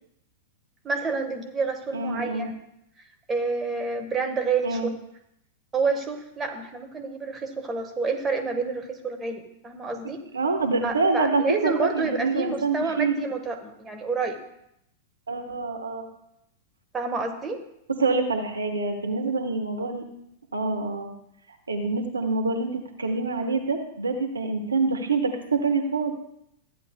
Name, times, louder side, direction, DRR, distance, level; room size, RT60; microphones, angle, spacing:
voice 1, 0.8-2.5 3.3-4.8 5.7-10.2 10.8-14.4 16.9-17.6, right 4 dB, 15° right, 4 dB, 1.4 m, -29 dB
voice 2, 1.9-2.5 4.6-4.9 10.3-13.2 15.3-16.1 18.0-20.1 20.5-21.1 21.7-26.1, right 3 dB, 80° right, 4 dB, 1.1 m, -26 dB
14.5 x 9.6 x 2.2 m, 0.78 s
figure-of-eight pair, 95°, 0 cm